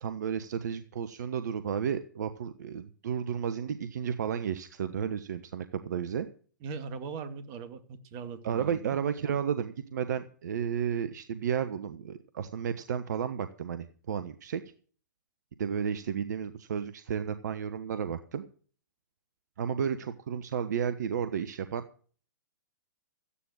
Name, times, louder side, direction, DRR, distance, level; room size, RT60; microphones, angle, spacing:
voice 1, 0.0-6.3 8.4-14.6 15.6-18.4 19.6-21.8, right 8 dB, 60° right, 11 dB, 1.1 m, -32 dB
voice 2, 6.6-9.0, right 5 dB, 40° right, 9 dB, 2.2 m, -40 dB
14.5 x 9.9 x 6.4 m, 0.43 s
figure-of-eight pair, 115°, 10 cm